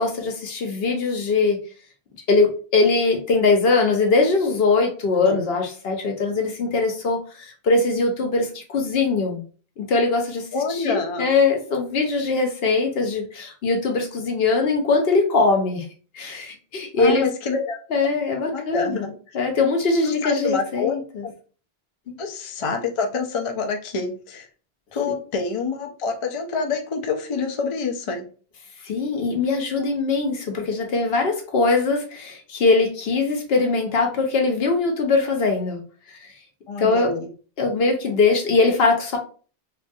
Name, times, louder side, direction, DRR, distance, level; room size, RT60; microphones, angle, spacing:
voice 1, 0.0-1.6 2.3-9.4 9.8-15.8 16.1-17.3 17.9-21.3 28.8-35.8 36.1-36.3 36.8-37.1 37.6-39.2, left 3 dB, 75° left, 3 dB, 0.9 m, -21 dB
voice 2, 10.5-11.3 17.0-17.8 18.5-19.0 20.2-21.0 21.2-21.3 22.2-24.5 24.9-28.3 36.7-37.3, left 4 dB, 45° left, 4 dB, 0.4 m, -27 dB
3.1 x 2.3 x 2.6 m, 0.39 s
omnidirectional pair, 1.0 m